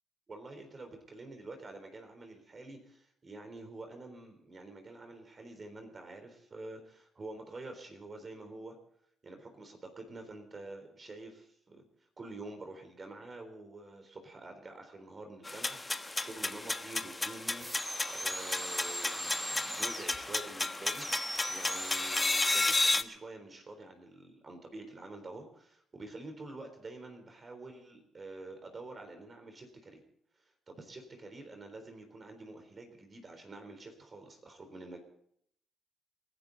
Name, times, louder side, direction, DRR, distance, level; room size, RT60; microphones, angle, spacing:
voice 1, 0.3-8.8 9.2-11.8 12.2-21.1 21.5-30.0 30.4-35.0, right 2 dB, 35° right, 6 dB, 3.8 m, -48 dB
sound 1, 15.4-23.0, left 2 dB, 20° left, 1.0 m, -33 dB
sound 2, 17.6-20.2 20.9-22.8, equal, 5° right, 3.9 m, -39 dB
29.5 x 11.5 x 4.1 m, 0.72 s
cardioid pair, 90°, 0 cm